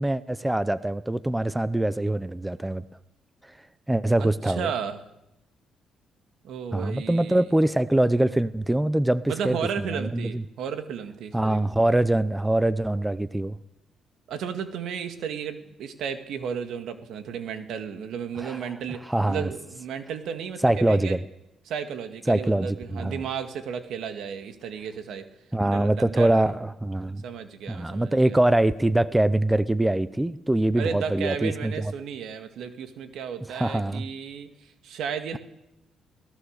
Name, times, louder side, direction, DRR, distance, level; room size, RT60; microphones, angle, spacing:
voice 1, 0.0-2.8 3.9-4.7 6.7-10.4 11.3-13.6 18.4-18.6 19.1-19.5 20.6-21.2 22.3-23.2 25.5-27.2 27.7-31.7 33.5-34.0, right 1 dB, 10° right, 15 dB, 0.7 m, -23 dB
voice 2, 4.2-5.0 6.4-7.5 9.3-11.6 14.3-21.2 21.7-25.3 25.6-26.5 27.2-28.4 30.8-35.4, right 7 dB, 80° right, 8 dB, 2.0 m, -34 dB
24.5 x 17.5 x 6.7 m, 0.88 s
cardioid pair, 90°, 0 cm